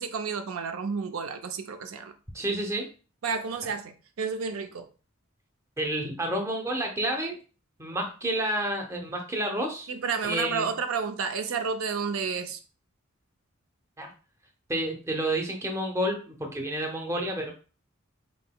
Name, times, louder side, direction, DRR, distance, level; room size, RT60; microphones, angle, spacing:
voice 1, 0.0-2.1 3.2-4.9 9.9-12.6, right 5 dB, 80° right, 8 dB, 0.5 m, -31 dB
voice 2, 2.3-2.9 5.8-7.3 7.8-9.9 10.2-10.7 14.0-14.1 14.7-17.5, right 1 dB, 15° right, 2 dB, 0.6 m, -30 dB
4.3 x 3.8 x 2.2 m, 0.36 s
head